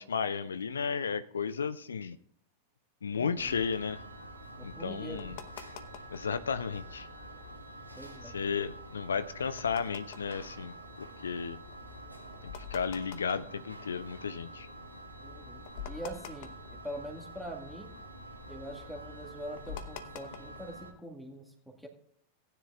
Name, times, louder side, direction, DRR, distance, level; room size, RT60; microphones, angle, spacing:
voice 1, 0.0-2.2 3.0-4.0 4.6-5.4 6.1-7.1 8.2-11.6 12.4-14.7, left 6 dB, 70° left, 14 dB, 0.4 m, -34 dB
voice 2, 3.1-3.6 4.6-5.4 8.0-8.4 15.2-15.6 15.9-18.0 18.5-21.9, right 1 dB, ahead, 2 dB, 1.8 m, -44 dB
sound 1, 3.2-6.4 6.8-7.4 7.8-14.5 15.0-15.1 15.3-17.5 17.7-20.7, left 8 dB, 50° left, 0.9 m, -47 dB
sound 2, 3.4-20.9, right 1 dB, 90° right, 1.4 m, -47 dB
18.5 x 9.9 x 2.4 m, 0.65 s
figure-of-eight pair, 90°, 0 cm